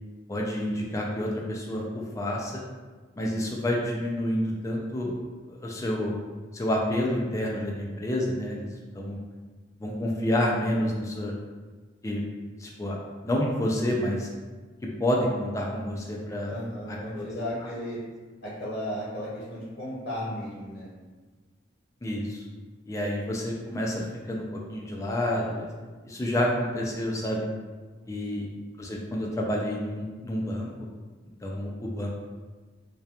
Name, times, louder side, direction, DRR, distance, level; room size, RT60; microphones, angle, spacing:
voice 1, 0.3-2.6 3.2-5.2 5.5-6.1 6.5-8.6 8.9-9.2 9.8-11.3 12.0-12.2 12.6-13.0 13.2-14.3 15.0-16.5 16.9-17.3 22.0-22.4 22.9-25.7 26.0-27.5 28.1-28.5 28.8-30.7 31.4-32.1, left 1 dB, 15° left, -2 dB, 0.3 m, -29 dB
voice 2, 16.5-18.0 18.4-20.9 28.0-28.3, left 1 dB, 60° left, -8 dB, 0.7 m, -35 dB
2.8 x 2.2 x 2.3 m, 1.4 s
head